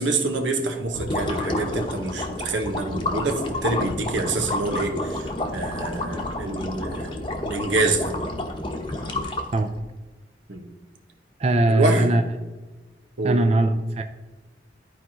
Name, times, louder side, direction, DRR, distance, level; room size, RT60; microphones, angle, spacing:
voice 1, 0.0-8.1 10.5-10.6 11.7-12.0 13.2-13.4, right 2 dB, 90° right, 4 dB, 1.2 m, -26 dB
sound 1, 0.9-9.8, left 1 dB, 25° left, 0.8 m, -30 dB
voice 2, 11.4-12.2 13.2-14.0, right 2 dB, 35° right, 6 dB, 0.4 m, -20 dB
13.5 x 4.7 x 2.9 m, 1.2 s
head